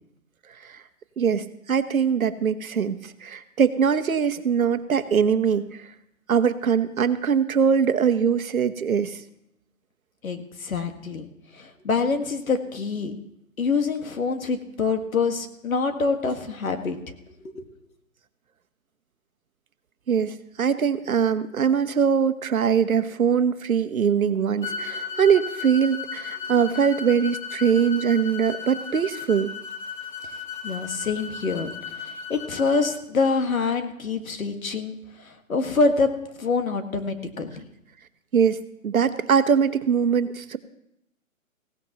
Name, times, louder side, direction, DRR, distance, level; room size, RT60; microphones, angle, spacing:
voice 1, 1.2-5.9 6.3-9.2 20.1-29.5 38.3-38.6 38.8-40.6, right 7 dB, 80° right, 10 dB, 1.1 m, -22 dB
voice 2, 10.2-13.1 13.6-17.0 17.4-17.6 24.6-25.2 30.6-36.1 36.4-37.7, left 4 dB, 75° left, 7 dB, 1.7 m, -26 dB
sound 1, 24.6-32.9, left 6 dB, 35° left, 1.3 m, -35 dB
19.0 x 16.5 x 3.0 m, 0.79 s
hypercardioid pair, 170°, 41 cm